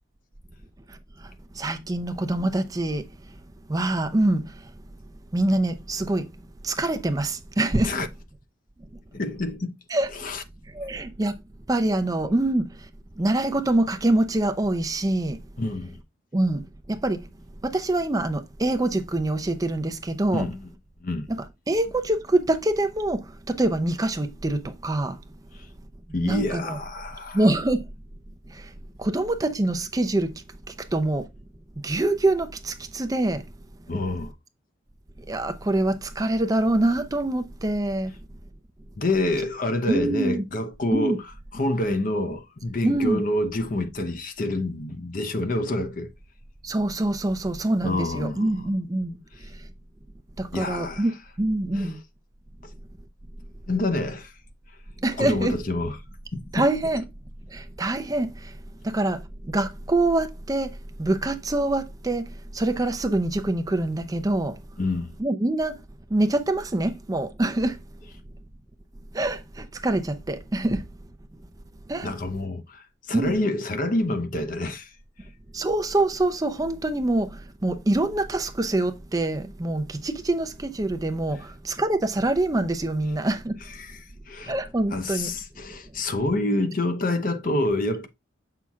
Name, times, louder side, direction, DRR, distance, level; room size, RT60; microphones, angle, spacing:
voice 1, 0.9-1.3 1.5-3.0 3.7-4.7 5.3-6.3 6.6-8.0 9.9-10.1 10.7-11.3 11.7-12.9 13.2-15.4 16.3-17.3 17.6-20.5 21.3-25.2 26.2-26.8 27.3-27.8 28.5-28.7 29.0-30.3 30.7-31.3 31.8-33.4 35.3-38.1 39.9-40.4 40.9-41.2 42.8-43.2 46.6-49.5 50.4-51.1 51.4-52.0 55.0-55.5 56.5-57.0 57.5-58.5 58.8-60.7 61.0-64.6 65.2-65.8 66.1-67.8 69.1-70.8 71.9-72.1 73.1-73.3 75.5-83.6 84.5-85.3, right 2 dB, 20° right, 0.4 m, -25 dB
voice 2, 9.1-9.8 10.1-10.4 15.6-16.0 20.3-20.7 21.0-21.3 26.1-27.5 33.9-34.3 39.0-41.2 41.5-46.1 47.8-48.6 50.5-51.1 51.7-51.9 53.7-54.3 55.2-56.0 56.3-56.5 64.8-65.1 72.0-74.9 83.8-84.0 84.3-84.5 84.9-88.1, left 2 dB, 45° left, 0.7 m, -27 dB
7.3 x 5.7 x 2.3 m
head